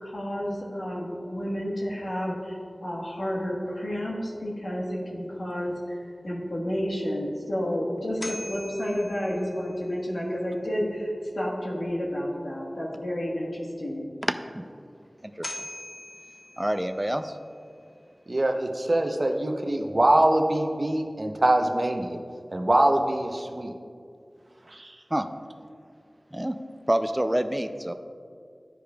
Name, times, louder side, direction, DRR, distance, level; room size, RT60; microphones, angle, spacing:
voice 1, 0.0-6.0 6.2-14.1, equal, 75° left, -3 dB, 1.3 m, -30 dB
sound 1, 8.0-10.1 15.0-15.1 15.4-17.3, left 1 dB, 55° left, 0.6 m, -41 dB
voice 2, 16.6-17.3 25.1-25.3 26.3-26.6 26.9-27.9, right 1 dB, 15° right, 8 dB, 0.4 m, -27 dB
voice 3, 18.3-22.2 22.5-23.7 24.7-24.9, right 1 dB, 50° right, 3 dB, 0.7 m, -23 dB
12.0 x 5.0 x 2.3 m, 2.3 s
wide cardioid pair, 45°, 0 cm